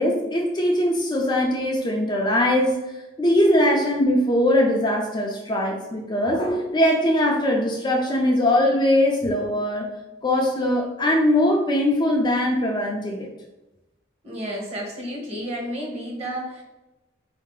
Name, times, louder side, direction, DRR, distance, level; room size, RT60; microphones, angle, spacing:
voice 1, 0.0-2.8 3.2-9.9 10.2-13.3, left 1 dB, 20° left, 0 dB, 0.4 m, -21 dB
voice 2, 14.2-16.6, equal, 30° right, -1 dB, 1.0 m, -31 dB
3.9 x 2.7 x 3.8 m, 1.0 s
head